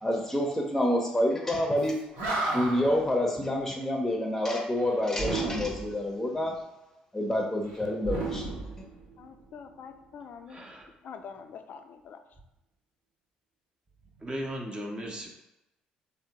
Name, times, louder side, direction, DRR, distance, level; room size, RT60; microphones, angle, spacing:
voice 1, 0.0-2.0 2.5-6.5 7.1-8.4, left 1 dB, 10° left, 1 dB, 0.7 m, -28 dB
Animal, 1.8-1.9 2.1-3.0 5.1-6.0 8.0-9.3, right 2 dB, 70° right, 0.9 m, -32 dB
voice 2, 9.2-10.7 11.0-12.2, left 6 dB, 55° left, 7 dB, 0.3 m, -45 dB
voice 3, 10.5-10.9 14.2-15.3, equal, 25° right, 1 dB, 0.7 m, -36 dB
3.3 x 2.1 x 2.8 m, 0.94 s
hypercardioid pair, 55°, 4 cm